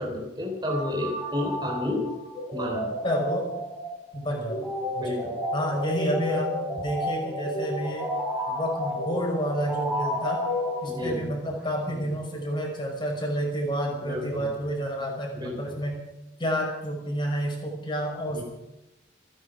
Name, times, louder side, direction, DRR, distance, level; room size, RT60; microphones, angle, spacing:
voice 1, 0.0-2.1 2.5-2.9 5.0-5.3 10.9-11.3 12.0-12.1 14.1-14.5 15.3-15.6 18.3-18.4, left 1 dB, 20° right, 0 dB, 3.6 m, -31 dB
sound 1, 0.7-11.4, equal, 5° right, 4.7 m, -32 dB
voice 2, 3.0-3.5 4.1-5.2 5.5-8.1 8.5-10.4 10.8-16.0 16.4-18.4, equal, 25° left, 0 dB, 5.4 m, -29 dB
28.5 x 10.5 x 5.0 m, 0.97 s
head